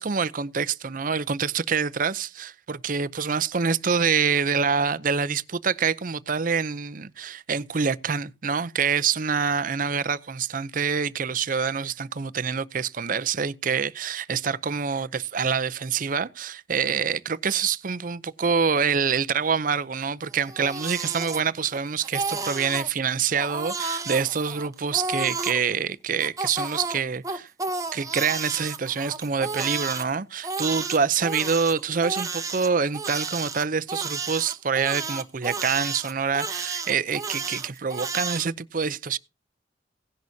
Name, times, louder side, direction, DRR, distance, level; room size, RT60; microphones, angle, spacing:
voice 1, 0.0-27.5 27.9-39.2, right 6 dB, 45° right, 0.6 m, -26 dB
Crying sobbing, 20.3-21.8 22.0-22.9 23.4-25.6 26.2-30.0 30.4-38.5, right 4 dB, 15° right, 0.9 m, -32 dB
17.0 x 10.5 x 2.8 m
head